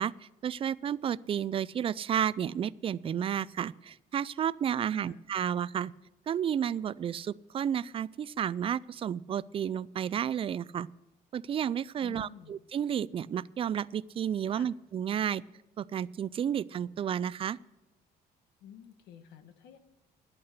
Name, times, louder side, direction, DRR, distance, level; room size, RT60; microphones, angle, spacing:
voice 1, 0.0-5.9 6.3-10.9 11.3-15.4 15.8-17.6, right 9 dB, 35° right, 20 dB, 0.3 m, -32 dB
voice 2, 12.0-12.5 14.5-14.7 18.6-19.8, left 9 dB, 80° left, 9 dB, 1.3 m, -50 dB
11.5 x 8.7 x 6.6 m, 1.1 s
cardioid pair, 110°, 17 cm